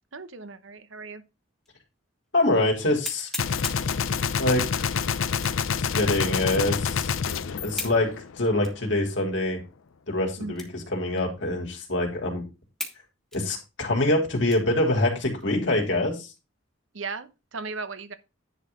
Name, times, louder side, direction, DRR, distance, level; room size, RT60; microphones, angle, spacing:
voice 1, 0.1-1.2 10.4-10.6 16.9-18.1, right 4 dB, 75° right, 1.0 m, -36 dB
sound 1, 1.7-1.8 2.3-2.4 3.0-4.0 5.3-5.7 6.3-6.4 7.7-8.0 8.6-8.8 9.4-9.5 10.5-10.9 11.2-11.3 11.9-12.0 12.8-13.0 13.3-14.8 15.3-15.5 15.9-16.4, left 1 dB, 5° left, 1.8 m, -38 dB
voice 2, 2.3-3.3 4.4-4.9 5.8-7.1 7.6-9.6 10.1-12.4 13.3-16.3, left 1 dB, 65° left, 3.1 m, -25 dB
Gunshot gunfire, 3.4-8.6, left 6 dB, 85° left, 0.6 m, -27 dB
10.5 x 4.1 x 5.3 m
head